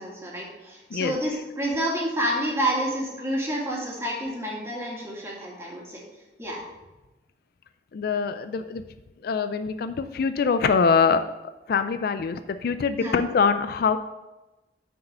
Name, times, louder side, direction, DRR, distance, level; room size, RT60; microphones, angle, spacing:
voice 1, 0.0-6.0 6.4-6.6 13.0-13.2, right 1 dB, 15° right, -4 dB, 2.1 m, -29 dB
voice 2, 7.9-8.8 9.2-11.2 11.7-14.0, left 5 dB, 55° left, 11 dB, 0.3 m, -23 dB
6.3 x 4.8 x 6.7 m, 1.1 s
head